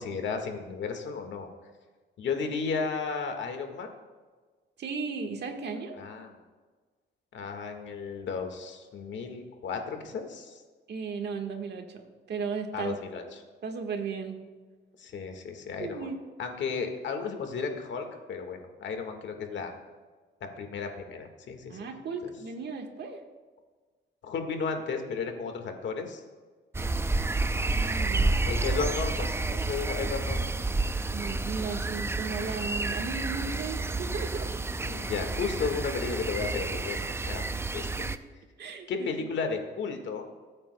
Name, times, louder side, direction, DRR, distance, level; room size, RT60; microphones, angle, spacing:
voice 1, 0.0-1.5 2.2-3.9 6.0-6.4 7.3-10.6 12.7-13.2 15.0-16.1 16.4-19.7 20.6-21.9 22.2-22.3 24.2-26.2 28.5-30.4 34.8-37.4 37.7-37.9 38.9-40.3, left 5 dB, 65° left, 5 dB, 1.7 m, -34 dB
voice 2, 4.8-6.0 10.9-12.0 12.3-13.0 13.6-14.4 15.8-16.2 21.7-23.2 27.7-28.4 31.1-34.5 38.0-38.1 38.6-39.1, right 5 dB, 60° right, 4 dB, 1.5 m, -35 dB
sound 1, 26.7-38.2, right 3 dB, 15° right, 0.4 m, -30 dB
19.5 x 8.8 x 2.2 m, 1.4 s
cardioid pair, 90°, 20 cm